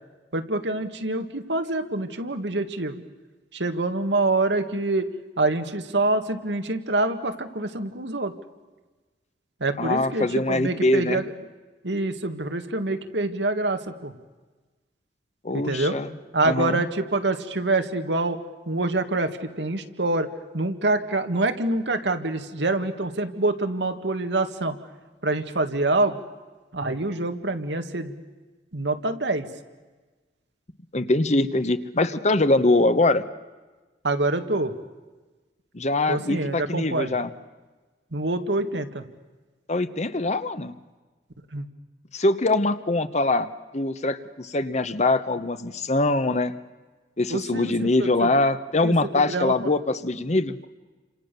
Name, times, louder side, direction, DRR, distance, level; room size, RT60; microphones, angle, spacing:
voice 1, 0.3-3.0 3.5-8.3 9.6-11.3 11.8-14.1 15.5-16.0 16.3-18.4 18.7-24.8 25.2-26.2 26.7-28.2 28.7-29.5 34.0-34.7 36.1-37.1 38.1-39.0 41.5-41.7 47.3-48.3 48.8-49.5, right 2 dB, 90° right, 7 dB, 1.9 m, -26 dB
voice 2, 9.8-11.2 15.4-16.1 16.4-16.8 30.9-33.2 35.7-37.3 39.7-40.7 42.1-46.5 47.2-50.6, left 2 dB, 40° left, 12 dB, 1.1 m, -23 dB
29.5 x 26.5 x 6.9 m, 1.3 s
head